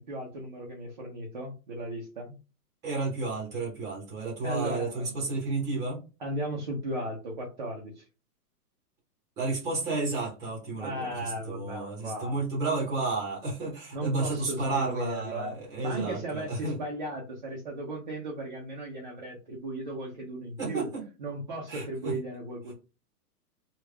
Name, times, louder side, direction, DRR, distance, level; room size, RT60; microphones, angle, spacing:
voice 1, 0.0-2.4 4.4-5.1 6.2-8.0 10.7-12.4 13.9-15.5 15.8-20.9 21.2-22.7, right 1 dB, 30° right, -2 dB, 0.5 m, -36 dB
voice 2, 2.8-6.0 9.4-16.8 20.6-21.0 21.7-22.2, right 3 dB, 5° right, -5 dB, 0.8 m, -32 dB
3.4 x 2.3 x 3.2 m, 0.31 s
hypercardioid pair, 170°, 48 cm